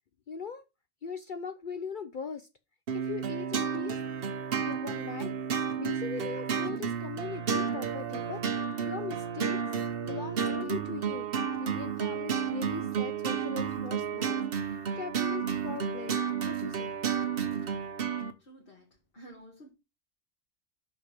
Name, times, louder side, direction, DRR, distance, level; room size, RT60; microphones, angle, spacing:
voice 1, 0.3-0.6 1.0-2.5 2.9-4.0 4.6-5.3 5.8-9.6 10.0-11.3 11.6-16.9 17.4-17.6, left 6 dB, 60° left, 0.5 m, -40 dB
sound 1, 2.9-18.3, right 7 dB, 50° right, 0.9 m, -32 dB
voice 2, 18.4-18.9 19.1-19.7, right 1 dB, 40° left, 1.8 m, -51 dB
5.9 x 5.3 x 5.9 m
omnidirectional pair, 1.5 m